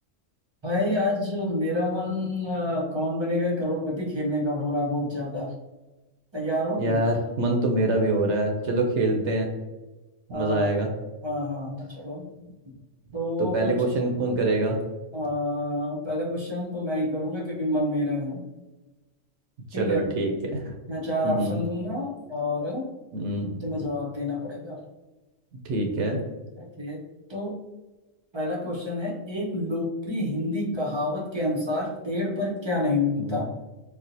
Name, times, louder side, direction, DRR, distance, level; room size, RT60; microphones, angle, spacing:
voice 1, 0.6-5.5 6.3-7.0 10.3-10.7 11.2-12.2 12.7-12.8 13.1-13.7 15.1-18.4 19.7-20.1 20.9-22.9 23.6-24.8 26.6-27.0 27.3-27.6 28.3-33.5, left 1 dB, 35° right, -3 dB, 0.4 m, -28 dB
voice 2, 6.8-9.5 10.3-10.9 13.4-14.8 19.8-20.7 21.2-21.6 23.1-23.5 25.7-26.2 33.2-33.4, right 2 dB, 70° right, 2 dB, 0.8 m, -25 dB
4.3 x 2.0 x 2.6 m, 1.1 s
omnidirectional pair, 1.3 m